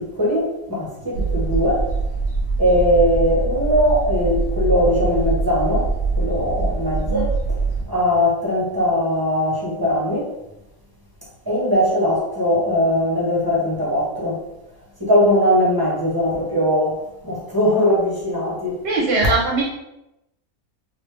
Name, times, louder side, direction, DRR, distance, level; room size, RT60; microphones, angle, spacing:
voice 1, 0.0-1.8 2.6-7.3 7.8-10.3 11.5-14.4 15.0-18.8, equal, 20° right, 0.6 m, -20 dB
sound 1, 1.1-7.8, right 3 dB, 70° left, 1.4 m, -23 dB
voice 2, 18.8-19.6, right 3 dB, 60° right, 0.8 m, -20 dB
3.3 x 2.6 x 3.2 m
omnidirectional pair, 1.5 m